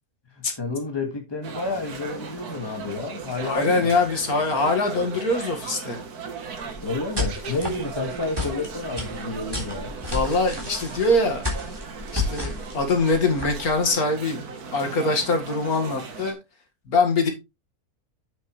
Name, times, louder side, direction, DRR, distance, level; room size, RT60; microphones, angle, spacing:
voice 1, 0.4-3.9 6.8-9.9, left 3 dB, 15° left, 1.9 m, -30 dB
sound 1, 1.4-16.3, right 5 dB, 85° right, 1.8 m, -37 dB
voice 2, 3.4-6.0 10.1-11.4 12.1-14.4 14.7-16.4 16.9-17.3, left 2 dB, 75° left, 2.4 m, -23 dB
sound 2, 6.5-13.9, left 2 dB, 15° right, 3.6 m, -32 dB
8.3 x 7.2 x 3.2 m
omnidirectional pair, 1.6 m